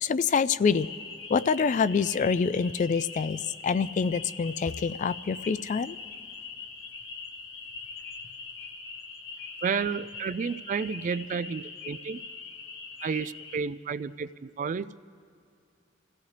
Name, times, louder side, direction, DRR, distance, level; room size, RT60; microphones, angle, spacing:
voice 1, 0.0-0.9 1.3-6.0, left 5 dB, 40° left, 0.3 m, -26 dB
sound 1, 0.7-13.6, left 4 dB, 70° left, 1.1 m, -42 dB
voice 2, 9.6-12.2 13.0-14.9, right 5 dB, 40° right, 0.3 m, -31 dB
27.5 x 16.0 x 3.3 m
head